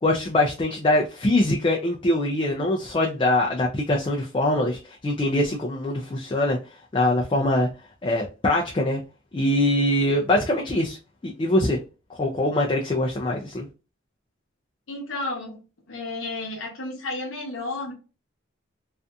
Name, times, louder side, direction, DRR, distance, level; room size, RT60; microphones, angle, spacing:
voice 1, 0.0-6.6 6.9-7.7 8.0-9.0 9.3-11.8 12.1-13.7, left 1 dB, 25° left, -1 dB, 0.3 m, -23 dB
voice 2, 14.9-15.6 15.9-17.9, left 2 dB, 80° left, 0 dB, 0.8 m, -32 dB
2.6 x 2.4 x 2.2 m, 0.32 s
head